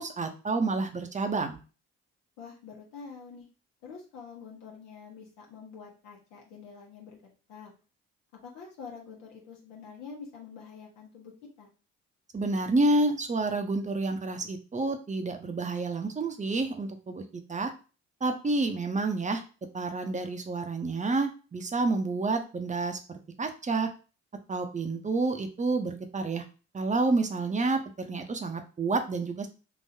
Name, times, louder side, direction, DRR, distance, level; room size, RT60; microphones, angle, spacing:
voice 1, 0.0-1.6 12.3-17.2 17.5-17.7 18.2-19.4 19.7-23.0 23.4-23.9 24.5-26.4 26.7-29.5, right 3 dB, 20° right, 5 dB, 0.8 m, -29 dB
voice 2, 2.4-3.5 3.8-7.2 7.5-7.7 8.4-11.3 11.6-11.7, left 5 dB, 65° left, -2 dB, 1.1 m, -46 dB
3.9 x 2.6 x 2.7 m, 0.34 s
hypercardioid pair, 50°, 33 cm